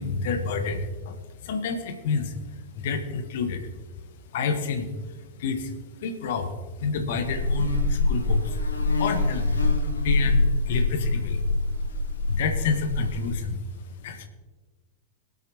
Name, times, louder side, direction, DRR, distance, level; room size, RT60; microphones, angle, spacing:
voice 1, 0.0-2.4 2.7-3.6 4.3-4.9 5.4-5.7 6.0-8.6 8.9-9.5 10.0-11.4 12.3-13.6 14.0-14.3, left 5 dB, 55° left, 7 dB, 1.5 m, -29 dB
Buzz, 7.2-13.4, left 2 dB, 75° left, 1.7 m, -25 dB
23.5 x 8.1 x 3.1 m, 1.3 s
figure-of-eight pair, 90°, 0 cm